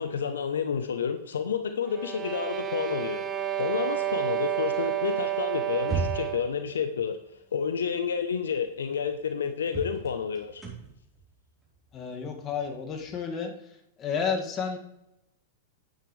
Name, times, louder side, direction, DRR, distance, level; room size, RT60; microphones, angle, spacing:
voice 1, 0.0-3.2 3.6-7.2 7.5-10.6, left 7 dB, 80° left, 9 dB, 0.8 m, -30 dB
sound 1, 1.8-6.6, right 12 dB, 25° right, 1.3 m, -30 dB
sound 2, 5.8-6.5 8.3-8.4 8.8-8.9 9.7-13.2, right 3 dB, 10° right, 3.9 m, -36 dB
voice 2, 11.9-13.5 14.0-14.8, left 6 dB, 30° left, 2 dB, 2.0 m, -31 dB
10.5 x 9.3 x 3.3 m, 0.83 s
hypercardioid pair, 110°, 0 cm